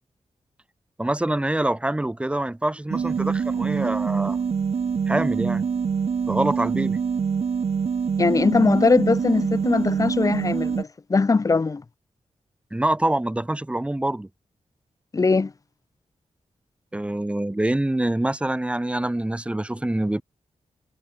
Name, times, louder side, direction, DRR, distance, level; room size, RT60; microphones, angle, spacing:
voice 1, 1.0-4.4 5.1-5.6 6.3-7.0 12.7-14.3 16.9-20.2, right 1 dB, 10° right, 1.2 m, -25 dB
sound 1, 2.9-10.8, right 6 dB, 55° right, 3.8 m, -25 dB
voice 2, 8.2-11.8 15.1-15.5, left 4 dB, 25° left, 0.8 m, -21 dB
wide cardioid pair, 175°, 12 cm